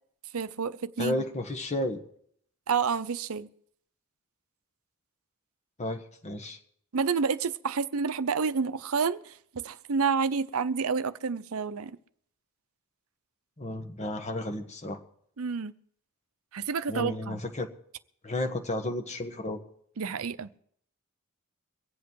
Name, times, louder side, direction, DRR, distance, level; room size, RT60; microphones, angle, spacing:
voice 1, 0.3-1.2 2.7-3.5 6.9-12.0 15.4-15.7 16.5-17.4 20.0-20.5, right 5 dB, 65° right, 0.6 m, -29 dB
voice 2, 1.0-2.0 5.8-6.6 13.6-15.0 16.9-17.7 18.2-19.6, left 1 dB, 30° left, 1.4 m, -32 dB
24.0 x 8.1 x 4.7 m
head